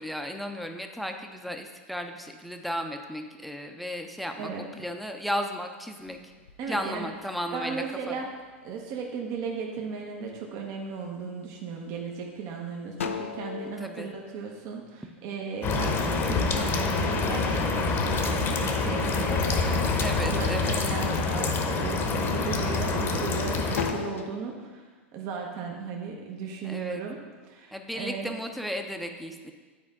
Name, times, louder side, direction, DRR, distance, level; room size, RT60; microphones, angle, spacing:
voice 1, 0.0-4.5 4.8-6.2 6.7-8.1 13.6-14.1 20.0-20.8 22.7-23.3 26.6-27.0 27.7-29.5, equal, ahead, 5 dB, 0.6 m, -35 dB
voice 2, 4.3-4.7 6.6-7.1 7.5-8.3 8.6-28.3, right 5 dB, 50° right, 1 dB, 0.9 m, -36 dB
sound 1, 6.0-7.9 8.4-9.1 9.6-10.2 10.6-11.5 12.0-12.1 12.5-15.4 15.7-18.0 18.4-19.4 19.8-20.4 20.9-21.2 21.6-23.3 23.6-24.3, left 7 dB, 90° left, 0.5 m, -38 dB
sound 2, 15.6-23.9, left 4 dB, 35° left, 0.9 m, -26 dB
9.6 x 4.3 x 3.6 m, 1.4 s
hypercardioid pair, 100°, 7 cm